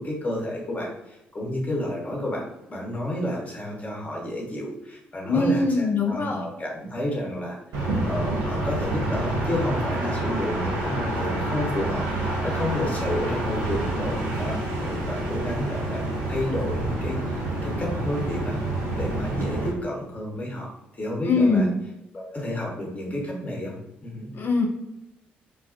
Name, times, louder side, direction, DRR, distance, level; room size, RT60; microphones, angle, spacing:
voice 1, 0.0-7.6 8.0-18.6 18.9-21.7 22.1-23.8 24.0-24.3, left 1 dB, 25° left, -2 dB, 0.9 m, -31 dB
voice 2, 5.2-6.5 21.3-21.7 24.4-24.7, left 3 dB, 40° left, 3 dB, 0.4 m, -22 dB
sound 1, 7.7-19.7, right 2 dB, 65° right, 0.6 m, -28 dB
2.3 x 2.2 x 2.4 m, 0.87 s
figure-of-eight pair, 45°, 5 cm